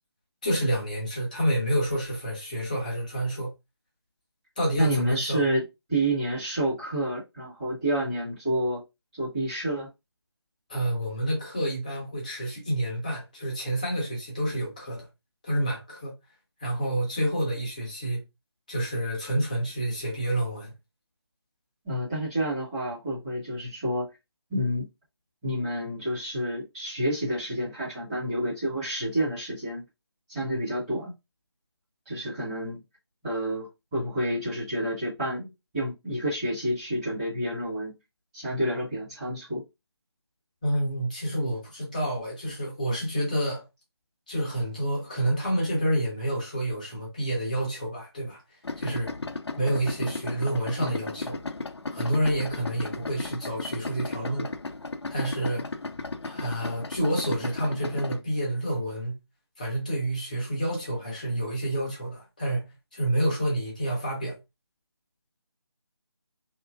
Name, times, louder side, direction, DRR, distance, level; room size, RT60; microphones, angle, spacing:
voice 1, 0.4-3.5 4.6-5.5 10.7-15.1 15.4-16.1 16.6-18.2 18.7-20.7 40.6-43.6 44.3-48.4 48.8-49.1 49.6-51.4 51.9-54.5 55.1-55.7 56.2-59.2 59.6-62.6 62.9-64.4, right 1 dB, 15° left, 0.7 m, -28 dB
voice 2, 4.8-5.6 5.9-8.8 9.1-9.9 21.8-24.1 24.5-24.9 25.4-29.8 30.3-31.1 32.0-32.8 33.2-37.9 38.3-39.6 50.8-51.1, right 1 dB, 15° right, 1.3 m, -29 dB
Idling, 48.6-58.2, left 3 dB, 70° left, 0.4 m, -35 dB
2.8 x 2.5 x 2.3 m
figure-of-eight pair, 160°, 14 cm